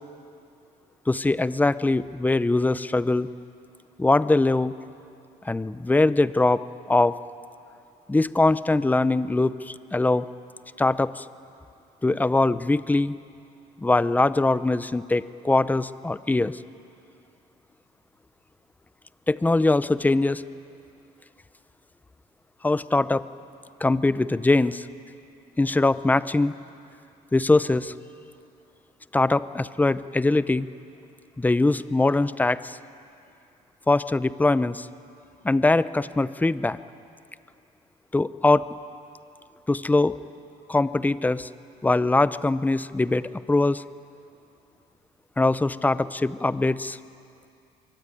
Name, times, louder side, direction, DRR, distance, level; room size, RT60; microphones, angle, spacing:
voice 1, 1.1-3.3 4.0-4.7 5.4-6.6 6.9-7.2 8.1-10.3 10.8-11.3 12.0-13.1 13.8-16.6 19.3-20.4 22.6-23.2 23.8-24.9 25.6-26.5 27.3-27.9 29.1-30.7 31.4-32.8 33.9-34.9 35.4-36.8 38.1-38.7 39.7-40.2 40.7-41.5 41.8-43.2 43.5-43.8 45.4-47.0, left 2 dB, 10° left, 15 dB, 0.6 m, -22 dB
23.5 x 23.0 x 9.2 m, 2.6 s
cardioid pair, 110°, 17 cm